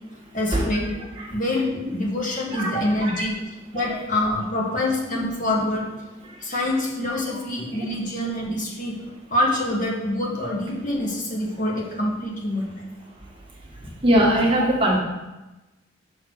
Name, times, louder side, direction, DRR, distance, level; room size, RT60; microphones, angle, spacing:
voice 1, 0.3-0.9 1.3-3.3 3.7-5.9 6.4-9.0 9.3-12.8 14.6-14.7, left 1 dB, 45° left, -2 dB, 1.5 m, -25 dB
voice 2, 14.0-15.0, right 1 dB, 30° right, -3 dB, 1.5 m, -20 dB
6.4 x 4.5 x 6.3 m, 1.1 s
head